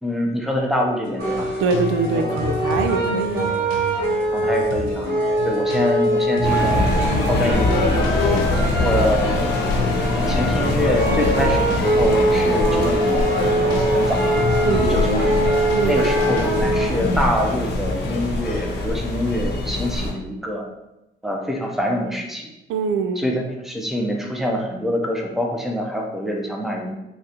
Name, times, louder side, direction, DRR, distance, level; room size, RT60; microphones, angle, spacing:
voice 1, 0.0-1.5 4.3-5.1 5.4-6.8 7.3-8.4 8.8-9.4 10.1-13.3 13.9-14.2 14.8-15.3 15.8-20.7 21.2-22.5 23.2-27.0, equal, ahead, 1 dB, 0.6 m, -25 dB
sound 1, 1.0-18.7, left 4 dB, 85° left, 0.5 m, -31 dB
sound 2, 1.2-16.9, right 1 dB, 55° right, 1.5 m, -23 dB
voice 2, 1.6-3.6 14.6-14.9 15.7-16.1 22.7-23.2, right 5 dB, 80° right, 6 dB, 0.4 m, -23 dB
sound 3, 6.4-20.1, left 2 dB, 55° left, 0.8 m, -23 dB
4.0 x 2.4 x 2.8 m, 0.93 s
cardioid pair, 90°, 20 cm